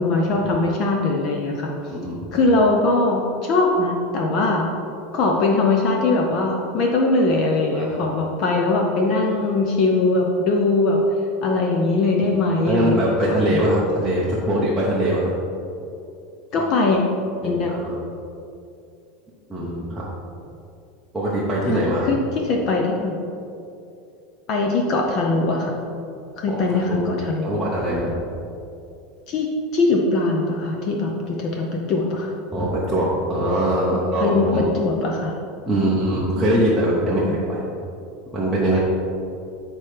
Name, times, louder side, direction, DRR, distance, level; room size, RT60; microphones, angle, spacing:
voice 1, 0.0-1.7 2.3-4.7 5.1-11.0 11.4-13.6 16.5-17.0 17.4-17.7 21.7-21.8 22.1-22.2 22.5-23.2 24.5-25.8 26.4-27.6 29.3-29.5 29.7-32.3 33.9-35.3 36.3-36.6 37.2-37.3, left 3 dB, 35° left, 0 dB, 0.6 m, -21 dB
voice 2, 1.9-2.2 7.7-8.0 12.7-15.3 16.6-16.7 17.4-18.0 19.5-20.1 21.1-22.1 26.5-27.0 27.4-28.1 32.5-34.7 35.7-37.7 38.3-38.8, right 1 dB, 5° right, -9 dB, 0.7 m, -22 dB
8.9 x 4.3 x 3.3 m, 2.6 s
supercardioid pair, 175°, 0 cm